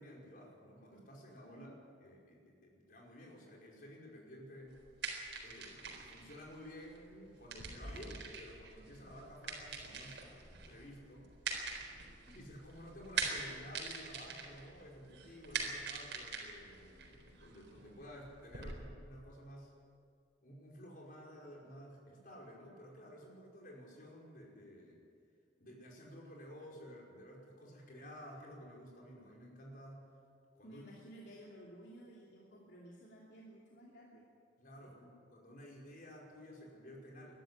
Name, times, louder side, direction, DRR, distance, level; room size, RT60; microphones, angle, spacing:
voice 1, 0.0-1.7 2.0-4.8 5.4-11.3 12.3-19.8 20.4-25.0 25.6-30.1 30.5-30.8 34.6-37.3, equal, 50° left, -2 dB, 5.3 m, -53 dB
sound 1, 4.7-18.7, right 4 dB, 80° right, 4.2 m, -44 dB
voice 2, 30.6-34.2 34.8-35.1, right 1 dB, 65° left, -4 dB, 2.8 m, -55 dB
21.5 x 13.0 x 9.8 m, 2.2 s
head